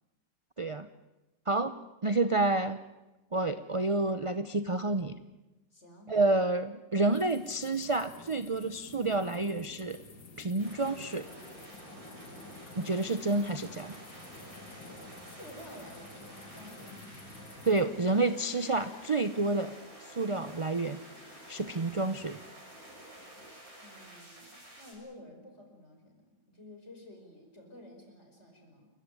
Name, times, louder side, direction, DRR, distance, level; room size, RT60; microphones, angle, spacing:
voice 1, 0.6-0.9 1.5-1.7 2.0-2.8 3.3-5.2 6.1-10.0 10.4-11.3 12.8-14.0 17.6-19.7 20.0-21.0 21.5-22.4, right 2 dB, 30° right, 12 dB, 0.5 m, -29 dB
voice 2, 5.7-6.2 15.2-16.9 23.8-28.9, left 1 dB, 40° left, 3 dB, 5.5 m, -52 dB
sound 1, 7.1-17.8, left 3 dB, 85° left, 2.7 m, -51 dB
sound 2, 10.6-24.9, right 1 dB, 60° right, 7.6 m, -50 dB
29.0 x 15.0 x 9.9 m, 1.0 s
omnidirectional pair, 1.7 m